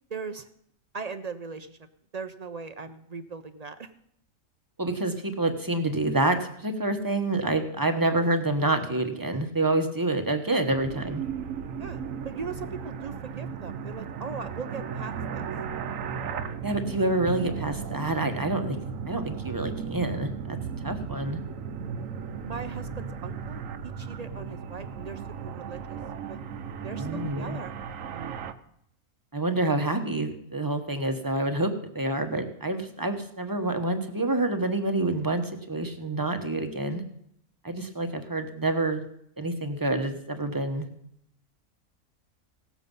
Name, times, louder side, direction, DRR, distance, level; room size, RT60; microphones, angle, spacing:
voice 1, 0.1-0.5 0.9-1.8 2.1-3.9 11.8-15.5 22.4-26.0 26.3-26.4 26.8-27.7, right 5 dB, 50° right, 10 dB, 0.5 m, -39 dB
voice 2, 4.8-11.2 16.6-18.8 19.1-20.6 20.8-21.4 27.0-27.6 29.3-37.0 37.6-39.0 39.4-40.9, right 2 dB, 15° right, 6 dB, 1.0 m, -27 dB
sound 1, 10.7-28.5, right 6 dB, 70° right, 1.2 m, -36 dB
18.0 x 7.2 x 5.4 m, 0.73 s
omnidirectional pair, 1.5 m